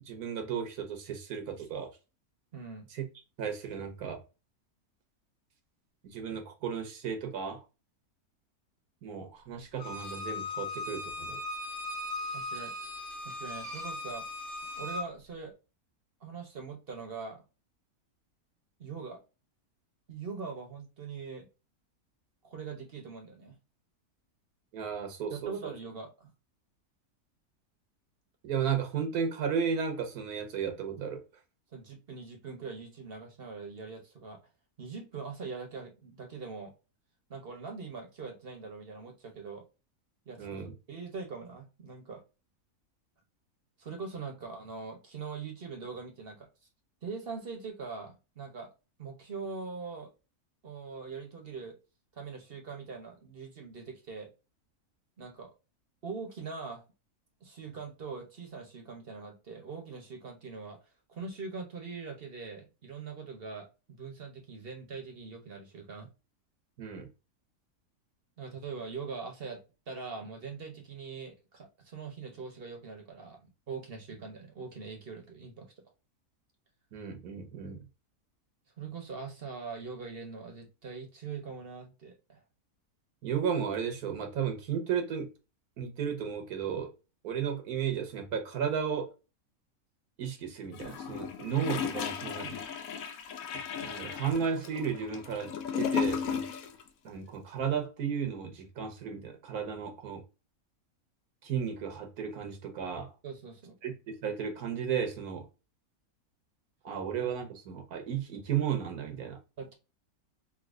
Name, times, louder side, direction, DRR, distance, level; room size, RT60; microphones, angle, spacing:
voice 1, 0.1-1.9 2.9-3.0 3.4-4.2 6.0-7.6 9.0-11.4 24.7-25.7 28.4-31.2 40.4-40.7 66.8-67.1 76.9-77.8 83.2-85.3 85.8-86.9 87.2-89.1 90.2-92.6 93.8-96.4 97.0-100.2 101.4-103.1 103.8-105.4 106.8-109.4, right 7 dB, 80° right, 1.4 m, -34 dB
voice 2, 2.5-2.9 12.3-14.3 14.8-15.5 16.2-17.4 18.8-19.2 20.1-21.5 22.4-23.6 25.3-26.3 31.7-34.4 34.8-36.7 37.3-39.6 40.3-42.2 43.8-46.5 47.0-48.7 49.0-50.1 50.6-51.8 52.1-54.3 55.2-55.5 56.0-56.8 57.4-60.8 61.1-66.1 68.4-75.8 78.8-82.4 103.2-103.7 109.6-109.7, right 5 dB, 45° right, 1.0 m, -42 dB
Bowed string instrument, 9.8-15.0, left 2 dB, 30° left, 1.2 m, -38 dB
Gurgling / Toilet flush, 90.7-96.8 97.1-97.2, left 7 dB, 70° left, 1.0 m, -35 dB
3.8 x 2.8 x 2.4 m
omnidirectional pair, 1.6 m